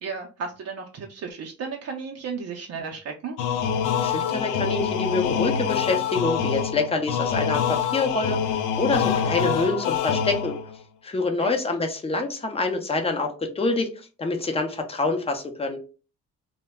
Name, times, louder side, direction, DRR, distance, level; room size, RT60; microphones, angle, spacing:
voice 1, 0.0-3.4 11.4-11.5, right 5 dB, 55° right, 1 dB, 0.6 m, -34 dB
sound 1, 3.4-10.8, left 7 dB, 85° left, 0.5 m, -25 dB
voice 2, 4.0-10.6 11.0-13.9 14.2-15.8, left 3 dB, 20° left, 4 dB, 0.6 m, -26 dB
2.1 x 2.1 x 3.4 m, 0.35 s
cardioid pair, 90°, 30 cm